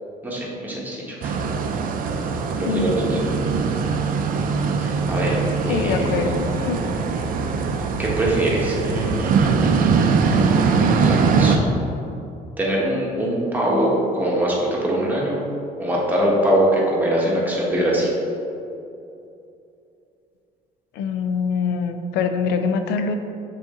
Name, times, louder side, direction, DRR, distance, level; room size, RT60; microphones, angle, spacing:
voice 1, 0.2-1.3 2.6-3.2 4.8-6.4 8.0-11.7 12.6-15.4 15.8-18.1, right 1 dB, 10° right, -5 dB, 1.4 m, -23 dB
sound 1, 1.2-11.6, right 5 dB, 55° right, 0.5 m, -21 dB
voice 2, 2.6-3.0 5.7-6.9 21.0-23.2, left 5 dB, 90° left, 7 dB, 0.4 m, -24 dB
6.2 x 4.2 x 3.7 m, 2.7 s
cardioid pair, 110°, 17 cm